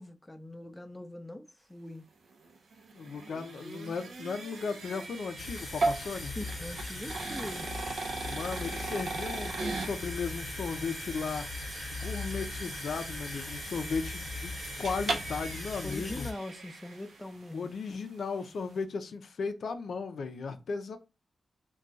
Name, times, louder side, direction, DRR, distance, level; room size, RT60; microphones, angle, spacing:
voice 1, 0.0-2.1 6.4-7.7 15.8-17.7, left 1 dB, 15° left, 0.4 m, -42 dB
sound 1, 2.3-17.5, right 3 dB, 80° right, 0.6 m, -38 dB
voice 2, 2.9-6.3 8.2-11.5 11.9-16.3 17.5-21.0, left 5 dB, 80° left, 0.4 m, -36 dB
sound 2, 5.4-16.3, left 3 dB, 45° left, 0.9 m, -40 dB
2.4 x 2.2 x 3.9 m
cardioid pair, 75°, 0 cm